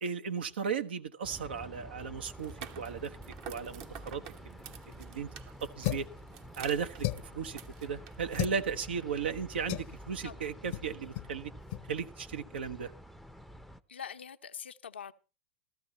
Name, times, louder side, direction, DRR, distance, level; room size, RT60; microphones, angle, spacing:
voice 1, 0.0-3.2 3.5-4.5 4.8-5.3 5.6-6.1 6.6-7.1 7.3-11.5 11.9-12.9, right 6 dB, 75° right, 1.1 m, -36 dB
sound 1, 1.2-13.8, right 1 dB, ahead, 0.6 m, -49 dB
sound 2, 2.3-8.4, right 9 dB, 50° right, 1.1 m, -50 dB
sound 3, 5.8-6.2 7.0-7.4 8.3-8.6 9.7-9.9 10.7-10.9 11.1-11.3 11.7-11.8, left 16 dB, 55° left, 0.7 m, -34 dB
voice 2, 13.9-15.1, left 8 dB, 85° left, 0.8 m, -44 dB
15.0 x 13.0 x 4.1 m
hypercardioid pair, 105°, 6 cm